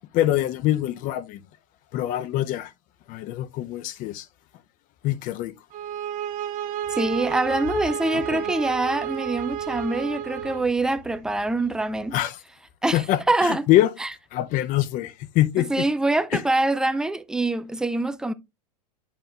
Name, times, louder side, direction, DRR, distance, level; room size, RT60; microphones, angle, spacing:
voice 1, 0.1-1.4 1.9-2.7 3.1-4.3 5.0-5.5 7.9-8.4 12.1-12.4 12.9-13.9 14.3-15.8 16.3-16.4, left 14 dB, 40° left, 0.6 m, -24 dB
sound 1, 5.7-10.7, right 10 dB, 40° right, 0.9 m, -31 dB
sound 2, 6.8-12.1, left 6 dB, 60° left, 4.1 m, -46 dB
voice 2, 6.9-12.2 12.8-13.0 13.3-13.6 14.0-14.1 15.6-18.3, right 2 dB, 5° right, 0.4 m, -24 dB
8.6 x 5.5 x 2.4 m
hypercardioid pair, 115°, 21 cm